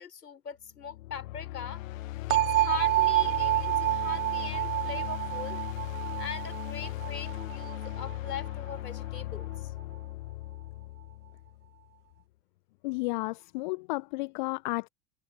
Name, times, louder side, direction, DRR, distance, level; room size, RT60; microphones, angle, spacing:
voice 1, 0.0-1.8 2.3-5.8 6.2-9.7, left 7 dB, 75° left, 6.0 m, -41 dB
sound 1, 0.8-11.8, left 17 dB, 55° left, 1.3 m, -38 dB
sound 2, 2.3-8.1, right 17 dB, 55° right, 0.5 m, -28 dB
voice 2, 12.8-14.9, left 25 dB, 30° left, 0.5 m, -32 dB
open air
figure-of-eight pair, 90°, 49 cm